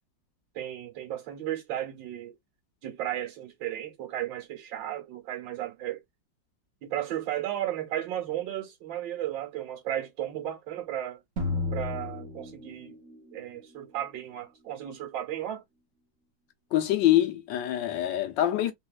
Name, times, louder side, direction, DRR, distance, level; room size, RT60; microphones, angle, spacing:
voice 1, 0.6-2.4 2.8-6.0 6.8-11.2 11.7-13.0 13.3-15.6, right 12 dB, 80° right, 1.9 m, -34 dB
sound 1, 11.4-13.2, left 3 dB, 45° right, 1.3 m, -32 dB
voice 2, 16.7-18.7, left 13 dB, 80° left, 1.5 m, -25 dB
4.2 x 2.5 x 2.4 m
omnidirectional pair, 2.0 m